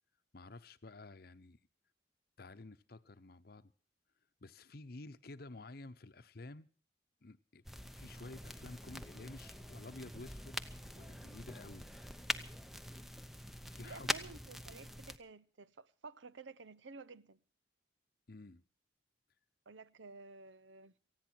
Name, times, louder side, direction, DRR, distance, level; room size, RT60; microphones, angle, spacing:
voice 1, 0.3-1.6 2.4-3.7 4.4-6.7 7.2-7.6 7.9-10.6 10.9-11.9 13.7-14.1 18.3-18.6, left 2 dB, 55° left, 0.8 m, -51 dB
sound 1, 7.6-15.2, equal, ahead, 0.7 m, -44 dB
voice 2, 13.8-17.4 19.7-20.9, right 4 dB, 80° right, 0.7 m, -53 dB
19.0 x 15.0 x 4.5 m
head